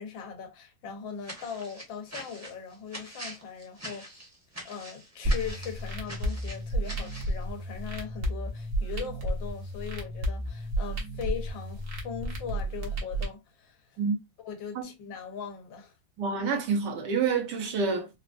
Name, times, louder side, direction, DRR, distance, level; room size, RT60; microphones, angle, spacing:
voice 1, 0.0-4.2 4.6-14.0 14.4-15.9, left 6 dB, 90° left, 1.6 m, -40 dB
sound 1, 1.2-7.4, right 1 dB, 10° right, 0.9 m, -43 dB
sound 2, 5.2-13.2, right 1 dB, 50° right, 1.2 m, -32 dB
voice 2, 16.2-18.1, right 5 dB, 70° right, 1.4 m, -28 dB
3.9 x 2.3 x 2.4 m
omnidirectional pair, 2.0 m